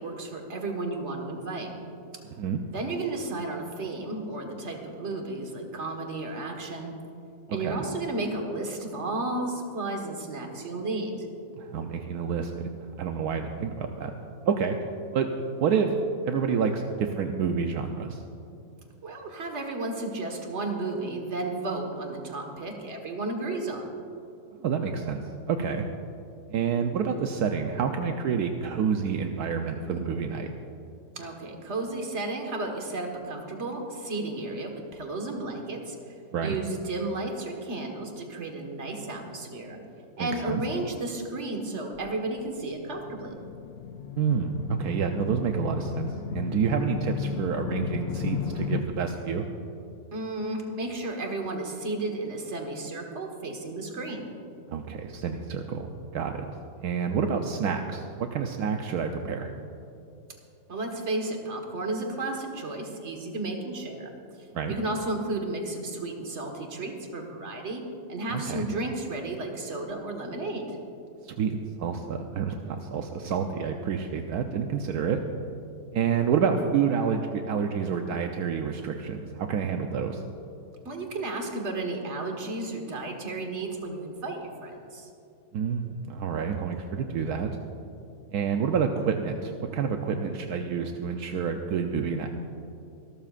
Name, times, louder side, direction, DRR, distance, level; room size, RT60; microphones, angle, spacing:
voice 1, 0.0-1.7 2.7-6.9 7.5-11.3 19.0-23.9 31.2-36.1 36.4-39.8 40.2-43.4 50.1-54.3 60.7-64.1 64.4-67.8 68.1-70.7 80.9-85.1, right 2 dB, 45° right, 2 dB, 1.8 m, -33 dB
voice 2, 7.5-7.8 11.6-12.7 13.0-14.1 14.5-14.8 15.1-15.3 15.6-15.9 16.2-18.2 24.6-25.8 26.5-30.5 36.3-36.6 40.2-40.6 44.1-49.4 54.7-56.4 56.8-59.5 64.5-64.7 68.3-68.7 71.2-75.2 75.9-80.2 85.5-87.6 88.3-92.3, right 6 dB, 80° right, 4 dB, 1.2 m, -28 dB
sound 1, 42.3-48.8, left 7 dB, 80° left, 0.5 m, -34 dB
25.5 x 13.0 x 2.5 m, 2.6 s
omnidirectional pair, 1.7 m